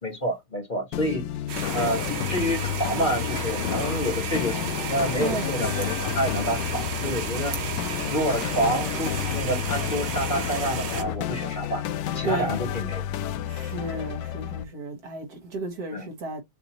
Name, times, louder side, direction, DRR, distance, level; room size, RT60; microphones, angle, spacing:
voice 1, 0.0-1.2 1.7-2.0 2.3-7.6 8.1-11.8 12.1-13.0 15.9-16.1, equal, 30° left, 1.4 m, -28 dB
sound 1, 0.9-14.6, left 10 dB, 85° left, 1.3 m, -32 dB
sound 2, 1.5-11.0, right 7 dB, 85° right, 1.7 m, -33 dB
sound 3, 1.6-11.2, left 10 dB, 70° left, 0.9 m, -35 dB
voice 2, 12.2-12.6 13.5-16.4, right 3 dB, 60° right, 1.8 m, -33 dB
6.7 x 2.6 x 2.9 m
omnidirectional pair, 1.9 m